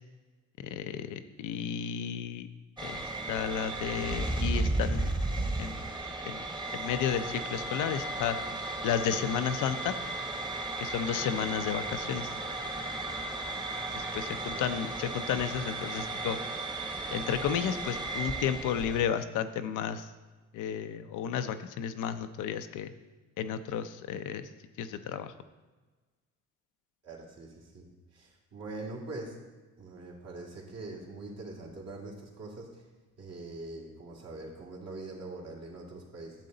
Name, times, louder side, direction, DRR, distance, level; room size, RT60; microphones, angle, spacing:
voice 1, 0.6-2.5 2.8-3.0 3.3-5.1 5.6-5.8 6.2-6.4 6.7-8.4 8.8-10.0 10.8-12.3 13.9-16.4 17.1-20.1 20.5-22.9 23.4-24.5 24.8-25.3, left 8 dB, 85° left, 10 dB, 0.6 m, -32 dB
sound 1, 2.8-19.1, right 2 dB, 15° right, 1.2 m, -35 dB
voice 2, 14.2-14.7 27.0-29.4 29.8-32.8 33.2-36.5, right 2 dB, 60° right, -2 dB, 2.5 m, -43 dB
10.5 x 7.5 x 3.9 m, 1.3 s
cardioid pair, 90°, 30 cm